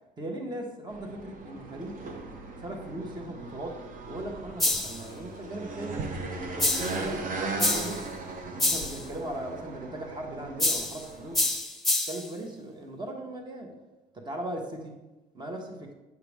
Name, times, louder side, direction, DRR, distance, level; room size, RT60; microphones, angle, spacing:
voice 1, 0.2-2.0 2.6-3.8 4.1-6.0 6.4-8.1 8.5-11.4 12.1-13.7 14.1-14.9 15.3-15.9, right 1 dB, 25° right, 2 dB, 1.3 m, -38 dB
sound 1, 0.9-11.5, right 3 dB, 50° right, 1.0 m, -38 dB
sound 2, 4.6-5.0 6.6-7.0 7.6-8.0 8.6-9.0 10.6-11.0 11.3-12.3, left 2 dB, ahead, 1.2 m, -27 dB
8.3 x 5.8 x 3.5 m, 1.1 s
cardioid pair, 110°, 17 cm